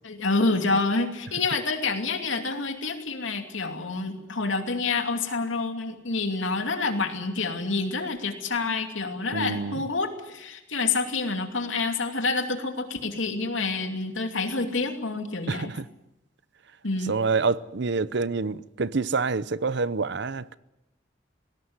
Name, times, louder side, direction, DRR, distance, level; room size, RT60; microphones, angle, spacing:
voice 1, 0.0-15.7 16.8-17.1, left 3 dB, 90° left, 2.7 m, -28 dB
voice 2, 9.3-9.8 15.5-15.9 17.1-20.6, right 4 dB, 65° right, 0.7 m, -27 dB
19.0 x 18.0 x 9.6 m
head